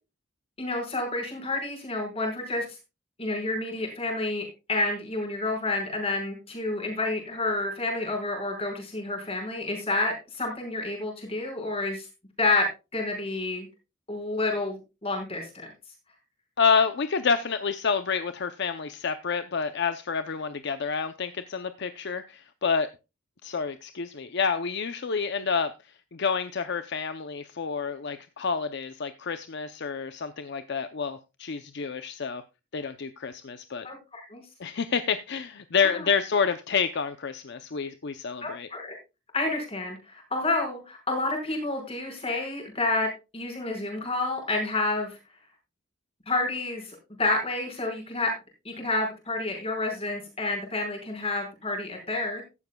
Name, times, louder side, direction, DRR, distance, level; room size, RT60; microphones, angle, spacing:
voice 1, 0.6-2.7 3.2-12.1 12.4-13.7 14.1-15.7 33.8-34.4 35.8-36.1 38.4-39.0 39.3-43.1 43.3-45.2 46.3-48.3 48.7-52.4, left 2 dB, 30° left, 5.2 m, -29 dB
voice 2, 16.6-22.9 23.4-25.7 26.1-32.4 32.7-33.9 34.6-38.7, left 5 dB, 60° left, 0.7 m, -28 dB
15.5 x 12.0 x 2.3 m
head